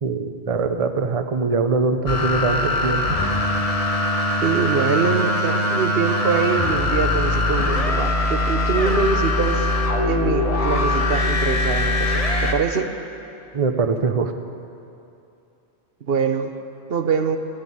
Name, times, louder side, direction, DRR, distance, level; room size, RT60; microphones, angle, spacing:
voice 1, 0.0-3.2 13.5-14.3, right 4 dB, 35° right, 7 dB, 0.7 m, -22 dB
sound 1, 2.1-12.5, left 1 dB, 35° left, 1.2 m, -21 dB
voice 2, 4.4-9.7 10.1-12.9 16.1-16.5 16.9-17.4, right 5 dB, 65° right, 8 dB, 1.0 m, -24 dB
13.0 x 10.5 x 9.8 m, 2.7 s
omnidirectional pair, 1.1 m